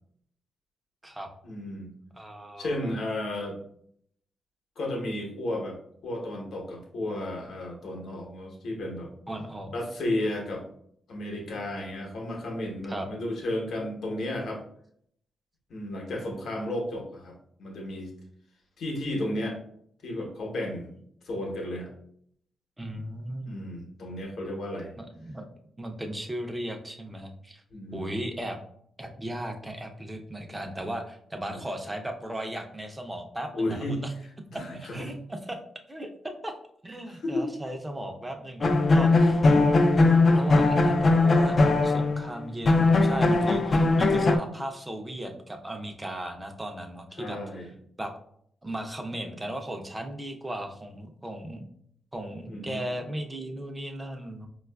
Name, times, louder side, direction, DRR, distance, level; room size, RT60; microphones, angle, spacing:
voice 1, 1.4-1.9 2.6-3.6 4.8-5.8 6.0-9.1 9.7-10.6 11.1-14.6 15.7-17.3 17.6-18.1 18.8-19.6 20.0-21.0 21.2-21.9 23.5-25.0 27.7-28.1 31.5-31.6 33.5-34.0 34.5-35.1 37.1-37.5 47.2-47.7 52.5-52.8, left 1 dB, 75° left, 0 dB, 0.9 m, -33 dB
voice 2, 2.1-3.0 9.3-9.7 12.9-13.1 22.8-23.7 25.0-25.4 25.8-27.6 27.9-28.6 29.0-34.1 34.9-35.6 35.9-36.5 36.8-39.4 40.3-47.4 48.0-48.1 48.6-51.6 52.1-54.5, right 1 dB, 15° right, 4 dB, 0.5 m, -36 dB
sound 1, 38.6-42.3 42.7-44.4, left 2 dB, 45° left, 0.4 m, -20 dB
4.6 x 2.3 x 2.2 m, 0.68 s
cardioid pair, 80°, 0 cm